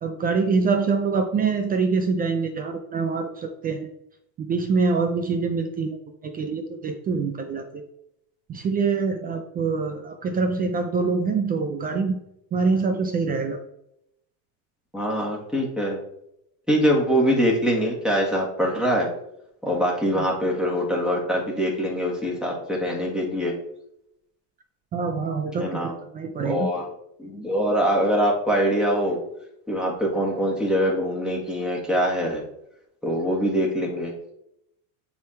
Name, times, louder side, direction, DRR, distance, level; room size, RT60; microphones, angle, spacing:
voice 1, 0.0-3.9 4.4-6.0 6.2-7.8 8.5-12.2 12.5-13.6 24.9-25.8 26.1-26.7, right 4 dB, 20° right, 5 dB, 0.3 m, -25 dB
voice 2, 14.9-16.0 16.7-19.1 19.6-23.5 25.6-25.9 26.4-26.9 27.2-29.2 29.7-32.4 33.0-34.1, equal, ahead, -2 dB, 1.7 m, -23 dB
9.4 x 3.6 x 4.4 m, 0.78 s
cardioid pair, 145°, 45 cm